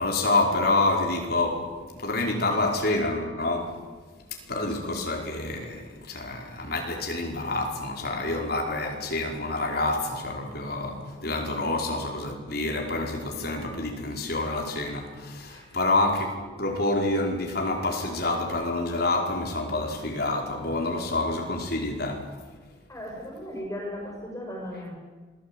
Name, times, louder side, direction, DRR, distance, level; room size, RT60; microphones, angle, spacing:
voice 1, 0.0-3.8 4.3-22.3, left 2 dB, 55° left, 1 dB, 5.0 m, -28 dB
voice 2, 22.9-24.9, left 1 dB, 15° left, -1 dB, 7.1 m, -37 dB
28.5 x 21.0 x 9.0 m, 1.4 s
head